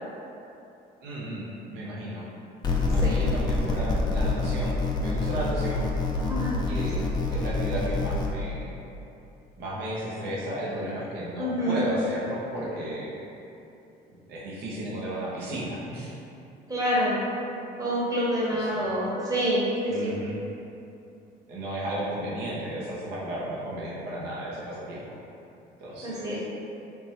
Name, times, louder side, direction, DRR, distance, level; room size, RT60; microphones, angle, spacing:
voice 1, 1.0-2.3 2.9-5.9 6.7-8.7 9.6-13.1 14.3-16.1 18.5-18.9 19.9-20.4 21.5-25.2 25.8-26.3, right 1 dB, 75° right, -6 dB, 0.8 m, -34 dB
sound 1, 2.6-8.3, left 3 dB, 25° left, 0.5 m, -26 dB
voice 2, 6.1-6.6 11.4-11.8 16.7-17.2 17.8-20.1 26.0-26.4, equal, 20° right, -7 dB, 0.9 m, -27 dB
3.3 x 3.1 x 2.9 m, 2.8 s
cardioid pair, 110°, 17 cm